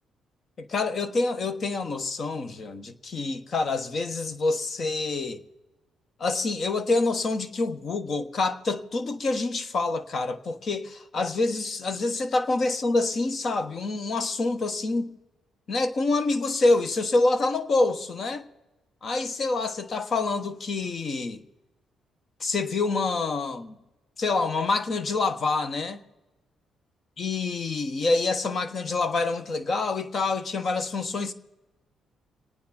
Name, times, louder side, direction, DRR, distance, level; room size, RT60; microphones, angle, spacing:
voice 1, 0.6-5.4 6.2-15.1 15.7-18.5 19.0-21.4 22.4-23.8 24.2-26.0 27.2-31.3, left 3 dB, 50° left, 1.3 m, -26 dB
27.0 x 9.4 x 4.3 m
cardioid pair, 90°, 0 cm